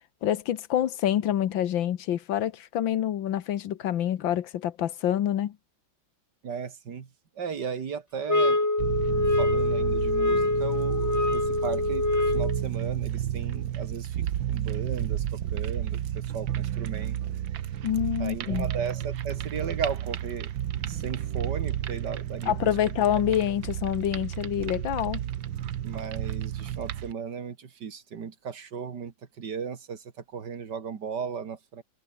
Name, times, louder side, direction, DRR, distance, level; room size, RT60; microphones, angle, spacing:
voice 1, 0.2-5.6 17.8-18.7 22.5-25.2, left 11 dB, 80° left, 1.8 m, -27 dB
voice 2, 6.4-7.1 7.4-8.7 9.4-14.2 14.5-15.2 15.5-17.2 18.2-20.5 20.9-22.7 25.8-31.8, right 6 dB, 60° right, 2.4 m, -36 dB
sound 1, 8.3-12.6, left 2 dB, 15° left, 0.6 m, -25 dB
sound 2, 8.8-27.1, right 11 dB, 80° right, 1.8 m, -32 dB
omnidirectional pair, 2.1 m